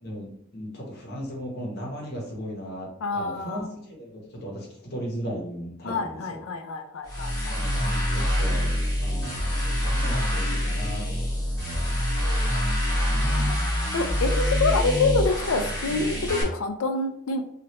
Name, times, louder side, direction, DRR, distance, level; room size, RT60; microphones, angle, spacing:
voice 1, 0.0-6.4 7.5-12.0 12.9-13.5, equal, 50° left, -2 dB, 0.9 m, -37 dB
voice 2, 3.0-3.7 5.8-7.6 11.9-12.4 13.4-13.6 13.9-17.4, left 3 dB, 80° left, 6 dB, 0.4 m, -27 dB
sound 1, 7.1-16.4, equal, 15° left, 1.2 m, -25 dB
3.0 x 2.4 x 2.9 m, 0.67 s
head